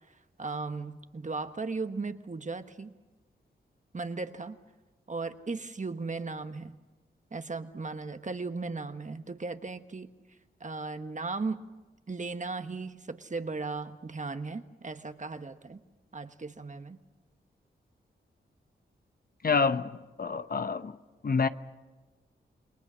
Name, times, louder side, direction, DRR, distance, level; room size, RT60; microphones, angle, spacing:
voice 1, 0.4-2.9 3.9-4.6 5.1-6.8 7.3-10.1 10.6-11.6 12.1-15.8 16.1-17.0, right 3 dB, 40° right, 1.4 m, -36 dB
voice 2, 19.4-21.0 21.2-21.5, left 5 dB, 50° left, 0.9 m, -27 dB
29.0 x 20.5 x 6.3 m
cardioid pair, 45°, 20 cm